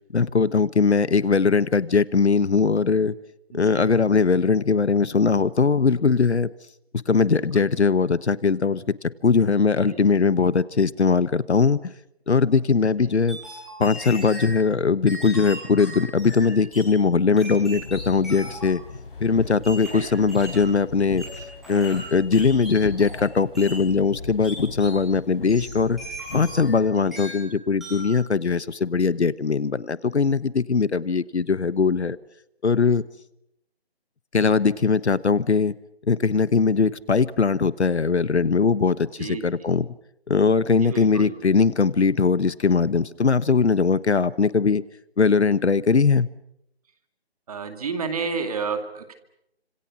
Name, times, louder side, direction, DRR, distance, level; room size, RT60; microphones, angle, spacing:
voice 1, 0.1-3.2 3.5-6.5 6.9-11.9 12.3-13.4 13.8-18.8 19.2-21.2 21.7-26.0 26.3-32.2 32.6-33.0 34.3-35.7 36.1-39.9 40.3-44.8 45.2-46.3, left 5 dB, 85° left, 18 dB, 1.3 m, -20 dB
voice 2, 3.5-3.8 7.4-7.7 9.8-10.0 19.9-20.1 27.0-27.2 39.2-39.5 40.8-41.4 47.5-49.2, right 5 dB, 35° right, 8 dB, 2.4 m, -31 dB
sound 1, 13.3-14.5 15.1-16.9 17.4-18.8 19.6-20.7 21.2-23.3 23.5-23.8 24.4-25.0 25.5-26.8 27.1-27.5 27.8-28.1, equal, ahead, 6.6 m, -38 dB
sound 2, 17.7-26.7, left 4 dB, 55° left, 5.7 m, -38 dB
29.5 x 26.5 x 6.1 m, 0.79 s
figure-of-eight pair, 165°, 32 cm